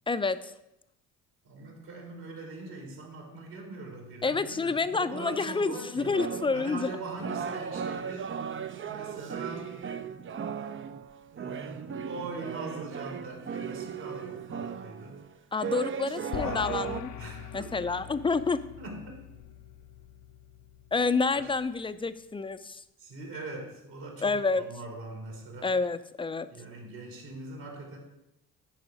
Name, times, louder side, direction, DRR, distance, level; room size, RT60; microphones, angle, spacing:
voice 1, 0.1-0.5 4.2-6.9 15.5-17.1 17.5-18.6 20.9-22.8 24.2-24.6 25.6-26.5, left 4 dB, 15° left, 12 dB, 0.5 m, -28 dB
voice 2, 1.4-6.2 6.5-8.3 8.8-9.8 11.3-15.2 16.4-16.7 17.2-17.8 18.5-19.1 21.3-21.4 23.0-25.8 26.5-28.0, right 3 dB, 65° right, 0 dB, 3.3 m, -42 dB
sound 1, 6.0-17.0, right 7 dB, 35° right, 0.5 m, -37 dB
sound 2, 16.3-21.8, left 9 dB, 55° left, 0.7 m, -41 dB
9.8 x 4.7 x 5.3 m, 0.87 s
supercardioid pair, 60°, 38 cm